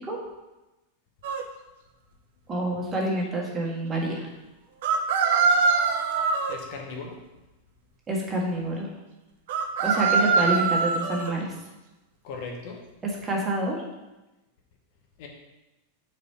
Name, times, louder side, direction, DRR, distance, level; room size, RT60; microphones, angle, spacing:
sound 1, 1.2-1.4 4.8-6.6 9.5-11.3, right 5 dB, 55° right, 0.6 m, -23 dB
voice 1, 2.5-4.3 8.1-8.9 9.8-11.5 13.2-13.8, right 1 dB, 20° right, -3 dB, 1.6 m, -27 dB
voice 2, 6.5-7.2 12.2-12.8 15.2-15.3, left 4 dB, 45° left, 1 dB, 0.9 m, -37 dB
4.9 x 4.4 x 5.5 m, 1.0 s
figure-of-eight pair, 90°, 0 cm